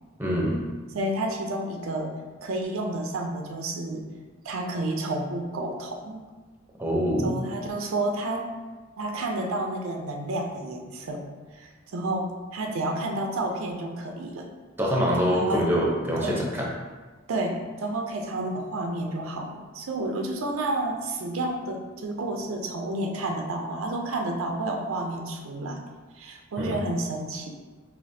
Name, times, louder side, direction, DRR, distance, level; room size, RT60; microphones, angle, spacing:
voice 1, 0.2-0.6 6.8-7.4 14.8-16.6 26.6-26.7, equal, 10° right, -3 dB, 0.7 m, -25 dB
voice 2, 0.9-2.1 2.4-4.1 4.4-6.2 7.2-8.5 9.0-11.2 11.5-14.5 15.2-15.7 16.2-16.5 17.3-25.8 26.1-27.6, right 2 dB, 70° right, 2 dB, 0.5 m, -30 dB
5.0 x 2.9 x 2.7 m, 1.3 s
head